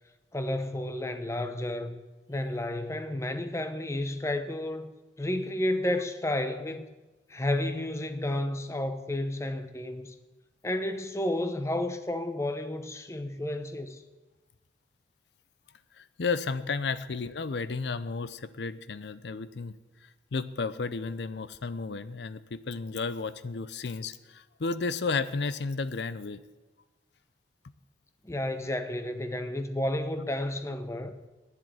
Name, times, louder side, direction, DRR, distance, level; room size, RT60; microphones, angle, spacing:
voice 1, 0.3-2.0 2.3-4.9 5.2-6.9 7.3-10.1 10.6-14.0 28.2-31.2, left 1 dB, 15° left, 0.7 m, -31 dB
voice 2, 15.9-26.4, left 4 dB, 70° left, 0.6 m, -33 dB
10.0 x 7.6 x 9.3 m
head